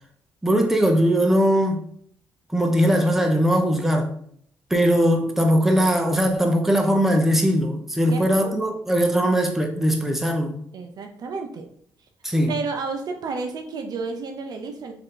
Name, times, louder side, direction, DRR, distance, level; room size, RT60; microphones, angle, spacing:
voice 1, 0.4-1.8 2.5-4.1 4.7-10.6 12.2-12.5, equal, 5° right, 0.8 m, -20 dB
voice 2, 8.1-8.5 10.7-11.7 12.5-14.9, right 4 dB, 60° right, 0.6 m, -31 dB
3.2 x 2.8 x 3.7 m
supercardioid pair, 70°, 8 cm